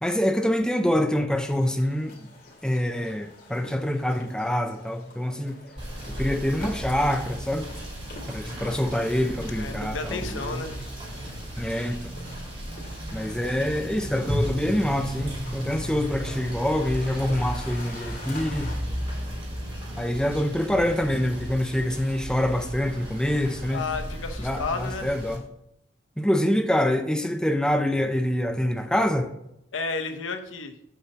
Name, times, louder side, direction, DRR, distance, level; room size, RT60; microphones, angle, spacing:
voice 1, 0.0-2.3 2.6-5.6 6.1-7.7 8.3-10.6 11.6-12.1 13.1-18.7 20.0-23.8 24.4-25.4 26.2-29.3, left 1 dB, 5° left, 0.5 m, -26 dB
sound 1, 1.4-18.7, left 2 dB, 50° left, 2.2 m, -46 dB
Rain / Motor vehicle (road), 5.8-25.3, equal, 30° right, 3.1 m, -34 dB
voice 2, 9.5-10.8 23.7-25.1 29.7-30.7, left 4 dB, 90° left, 0.9 m, -32 dB
8.2 x 4.3 x 5.9 m
head